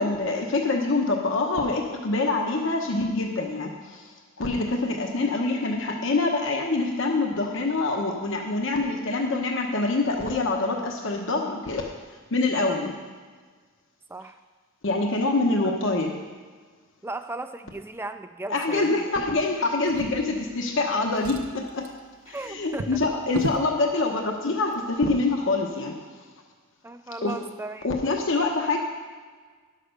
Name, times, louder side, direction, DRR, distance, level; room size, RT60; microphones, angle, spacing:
voice 1, 0.0-4.1 4.4-11.9 12.3-12.9 14.8-16.1 18.5-21.8 22.3-25.9 27.2-27.3 27.8-28.8, left 3 dB, 60° left, 2 dB, 1.0 m, -25 dB
voice 2, 17.0-19.3 22.3-23.0 26.8-28.0, right 2 dB, 10° right, 9 dB, 0.4 m, -36 dB
Drawer open or close, 19.8-20.8 21.1-23.7 24.6-24.7 25.1-25.2, right 2 dB, 80° right, 0.7 m, -36 dB
11.0 x 6.6 x 6.5 m, 1.5 s
head